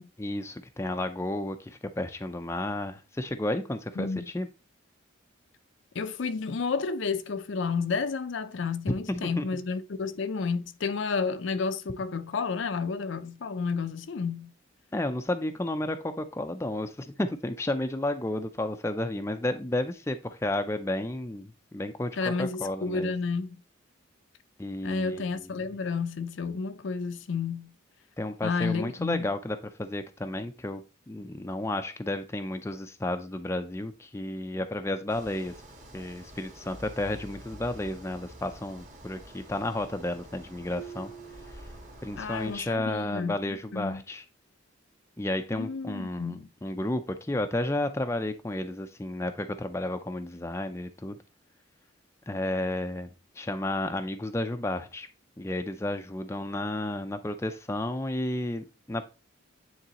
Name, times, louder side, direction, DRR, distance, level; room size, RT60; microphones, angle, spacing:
voice 1, 0.2-4.5 9.1-9.4 14.9-23.1 24.6-25.6 28.2-35.6 35.9-41.1 41.5-41.6 42.0-44.2 45.2-51.2 52.3-53.1 53.4-55.1 55.4-59.1, left 1 dB, 15° left, 0.4 m, -32 dB
voice 2, 5.9-14.5 22.2-23.6 24.8-27.7 28.4-29.3 42.2-44.0 45.5-46.5, left 4 dB, 65° left, 0.5 m, -31 dB
sound 1, 35.1-42.6, equal, 40° right, 1.5 m, -48 dB
Marimba xylophone, 40.7-42.5, right 8 dB, 70° right, 0.8 m, -47 dB
9.2 x 3.9 x 2.9 m
head